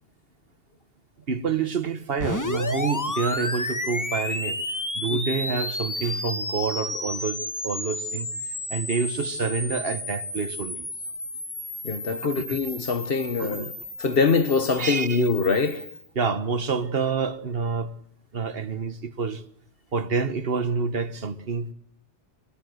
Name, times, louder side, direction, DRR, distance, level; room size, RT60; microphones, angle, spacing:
voice 1, 1.3-4.6 4.9-8.3 8.7-10.9 12.4-12.6 13.4-13.7 14.8-15.2 16.2-17.9 18.3-19.4 19.9-21.7, right 5 dB, 55° right, 1.4 m, -28 dB
sound 1, 2.2-16.0, left 2 dB, 15° left, 1.3 m, -32 dB
voice 2, 11.8-13.7 14.0-15.9, left 4 dB, 55° left, 1.5 m, -24 dB
24.5 x 22.0 x 7.9 m
omnidirectional pair, 1.2 m